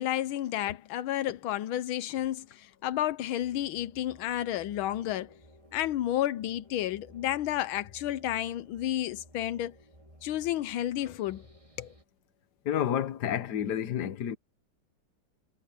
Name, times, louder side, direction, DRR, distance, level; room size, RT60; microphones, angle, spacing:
voice 1, 0.0-5.3 5.7-9.7 10.2-11.4 11.8-11.9, left 13 dB, 85° left, 1.5 m, -31 dB
sound 1, 3.4-12.0, equal, 15° right, 3.5 m, -56 dB
voice 2, 12.6-14.4, left 10 dB, 60° left, 1.6 m, -30 dB
omnidirectional pair, 2.2 m